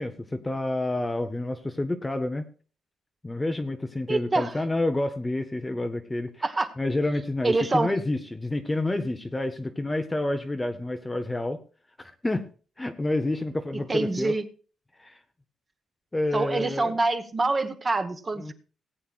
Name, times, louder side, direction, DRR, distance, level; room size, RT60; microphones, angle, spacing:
voice 1, 0.0-2.4 3.2-6.4 6.8-11.6 12.0-12.4 12.8-14.3 15.0-15.2 16.1-17.0 18.4-18.5, left 2 dB, 10° left, 7 dB, 0.6 m, -29 dB
voice 2, 4.1-4.6 6.4-6.7 7.4-7.9 13.9-14.4 16.3-18.5, right 3 dB, 20° right, 8 dB, 1.0 m, -25 dB
18.5 x 8.8 x 2.4 m, 0.37 s
cardioid pair, 165°, 0 cm